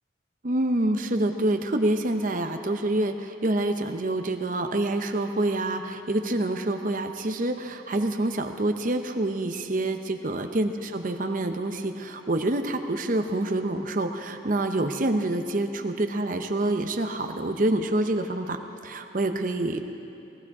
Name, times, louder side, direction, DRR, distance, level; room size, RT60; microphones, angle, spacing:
voice 1, 0.4-19.8, right 1 dB, 45° right, 6 dB, 0.7 m, -27 dB
19.0 x 15.0 x 4.8 m, 2.7 s
head